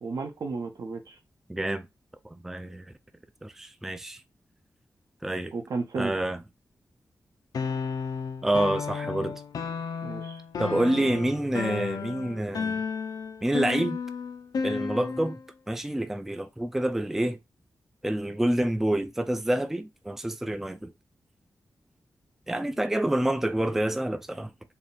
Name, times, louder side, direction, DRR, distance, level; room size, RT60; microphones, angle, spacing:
voice 1, 0.0-1.2 5.5-6.1 10.0-10.4 10.7-11.2, right 4 dB, 75° right, 0.8 m, -34 dB
voice 2, 1.5-1.9 2.2-2.9 3.4-4.2 5.2-5.5 6.0-6.4 8.4-9.4 10.6-12.8 13.4-14.0 14.6-15.4 15.7-17.4 18.0-20.9 22.5-24.5, right 1 dB, 5° right, 0.3 m, -27 dB
sound 1, 7.5-15.4, left 5 dB, 75° left, 0.5 m, -33 dB
3.7 x 2.4 x 4.0 m
wide cardioid pair, 140°, 6 cm